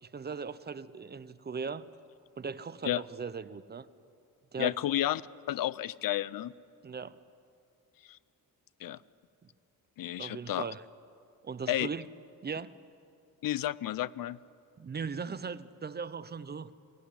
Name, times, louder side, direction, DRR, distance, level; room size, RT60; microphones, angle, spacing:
voice 1, 0.0-1.9 2.4-3.9 4.5-4.8 6.8-7.2 10.2-10.8 11.4-12.0 12.4-12.7 14.8-16.7, right 5 dB, 30° right, 14 dB, 0.6 m, -38 dB
voice 2, 4.6-5.2 5.5-6.5 8.8-9.0 10.0-10.7 11.7-11.9 13.4-14.4, left 13 dB, 70° left, 19 dB, 0.6 m, -31 dB
22.0 x 17.0 x 9.9 m, 2.5 s
wide cardioid pair, 135°, 36 cm